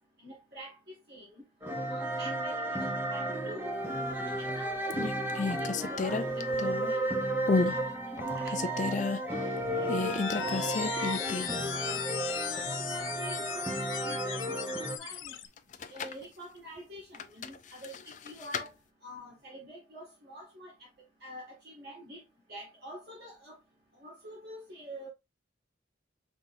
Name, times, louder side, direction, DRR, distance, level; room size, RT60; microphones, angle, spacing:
voice 1, 0.2-1.4 1.9-3.7 4.1-5.0 5.2-7.1 7.5-10.7 11.1-12.0 12.4-15.4 15.9-18.7 19.0-20.7 21.2-22.2 22.5-23.6 24.0-25.1, left 1 dB, 55° right, 1.9 m, -47 dB
sound 1, 1.6-15.0, right 1 dB, 10° right, 0.8 m, -33 dB
sound 2, 4.1-4.5 4.9-7.0 7.5-7.8 8.2-9.2 9.9-11.7 12.0-12.1 15.6-16.2 17.1-18.7, left 4 dB, 40° left, 0.4 m, -32 dB
sound 3, 9.6-15.5, left 9 dB, 80° left, 0.6 m, -38 dB
5.5 x 3.5 x 2.6 m
head